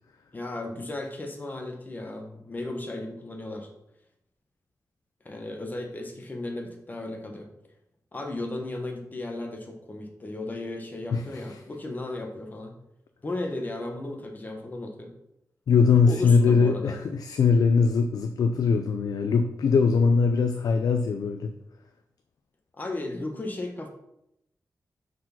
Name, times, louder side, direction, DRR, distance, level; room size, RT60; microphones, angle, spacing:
voice 1, 0.3-3.7 5.2-7.5 8.1-12.7 13.2-15.1 16.0-17.0 22.8-23.9, left 2 dB, 30° left, 3 dB, 1.2 m, -35 dB
voice 2, 15.7-21.5, left 5 dB, 80° left, 6 dB, 0.5 m, -21 dB
6.1 x 4.8 x 5.8 m, 0.81 s
wide cardioid pair, 145°, 6 cm